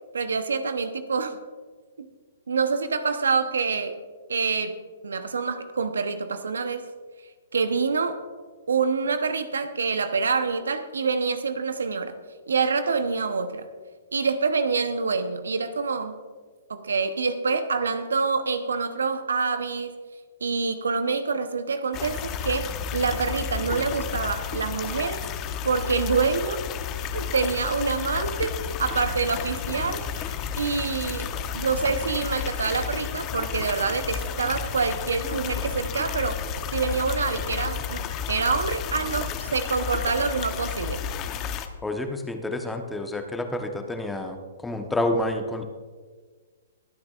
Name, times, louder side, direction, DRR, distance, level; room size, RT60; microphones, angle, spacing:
voice 1, 0.1-1.4 2.0-2.1 2.5-4.0 4.3-4.8 5.0-6.9 7.5-8.2 8.7-12.2 12.5-13.7 14.1-16.2 16.7-19.9 20.4-25.2 25.6-26.6 27.1-36.4 36.7-41.0, right 4 dB, 80° right, 10 dB, 0.9 m, -26 dB
sound 1, 21.9-41.7, left 7 dB, 30° left, 0.8 m, -32 dB
voice 2, 41.8-44.4 44.6-45.6, left 1 dB, 5° left, 4 dB, 1.1 m, -28 dB
22.0 x 9.0 x 2.5 m, 1.5 s
hypercardioid pair, 130°, 0 cm